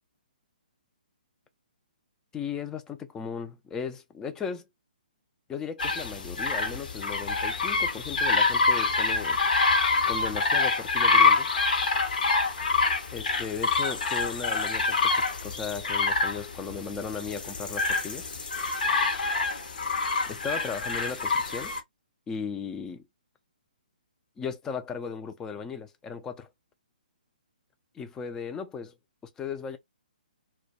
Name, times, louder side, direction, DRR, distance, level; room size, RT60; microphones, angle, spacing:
voice 1, 2.3-4.7 5.5-9.4 10.1-11.5 13.1-18.3 19.3-19.4 20.3-21.7 22.3-23.0 24.4-26.5 27.9-28.9 29.4-29.8, left 6 dB, 10° left, 0.3 m, -36 dB
sound 1, 5.8-21.8, left 4 dB, 60° left, 0.8 m, -26 dB
2.2 x 2.1 x 2.6 m
figure-of-eight pair, 135°, 5 cm